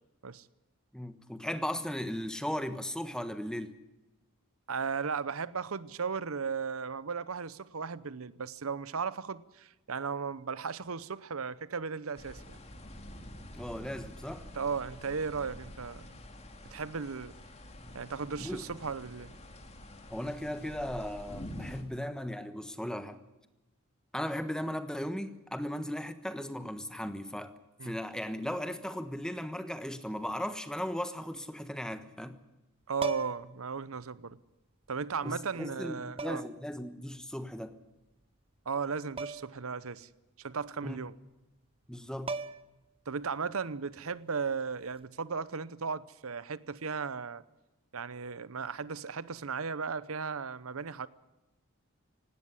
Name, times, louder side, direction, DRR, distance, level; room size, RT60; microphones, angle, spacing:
voice 1, 0.9-3.8 13.5-14.5 18.4-18.6 20.1-23.2 24.1-27.5 27.8-32.4 35.2-37.8 40.8-41.0 41.9-42.3, equal, 5° left, 1.3 m, -37 dB
voice 2, 4.7-12.6 14.5-16.2 16.7-17.3 17.9-19.3 27.8-28.0 32.9-34.4 34.9-36.4 38.7-40.1 40.4-41.1 43.1-47.4 47.9-51.1, right 5 dB, 80° right, 0.8 m, -36 dB
sound 1, 12.1-21.8, left 1 dB, 30° left, 2.6 m, -47 dB
sound 2, 33.0-33.6 34.9-35.0 36.2-36.6 39.2-39.6 39.9-40.0 41.9-42.0 42.3-42.9 44.8-45.0, right 3 dB, 25° right, 0.8 m, -38 dB
18.5 x 17.0 x 9.9 m
head